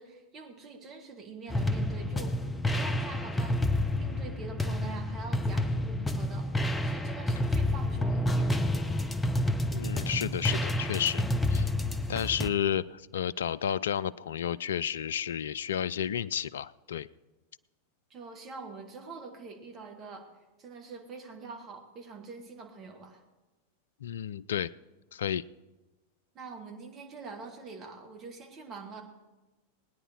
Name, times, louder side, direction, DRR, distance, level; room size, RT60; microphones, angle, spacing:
voice 1, 0.0-3.6 3.9-8.6 18.1-20.3 20.6-23.2 26.3-29.0, right 4 dB, 30° right, 3 dB, 2.6 m, -45 dB
sound 1, 1.5-12.5, left 1 dB, 10° left, 0.9 m, -29 dB
voice 2, 9.7-11.2 11.5-11.7 12.1-17.1 24.0-24.7 25.1-25.4, left 9 dB, 65° left, 20 dB, 0.4 m, -31 dB
19.5 x 9.9 x 4.8 m, 1.1 s
figure-of-eight pair, 90°, 0 cm